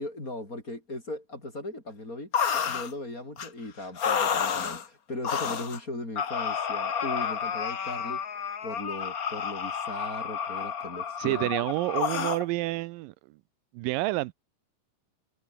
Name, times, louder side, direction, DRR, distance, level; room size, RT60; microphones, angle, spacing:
voice 1, 0.0-2.3 2.7-8.2 8.6-11.5, left 2 dB, 25° left, 6.2 m, -38 dB
sound 1, 2.3-2.9 3.4-3.5 4.0-4.8 5.2-5.8 6.2-12.4, left 7 dB, 70° left, 0.8 m, -30 dB
voice 2, 11.2-13.4 13.7-14.3, right 19 dB, 85° right, 2.3 m, -29 dB
omnidirectional pair, 3.9 m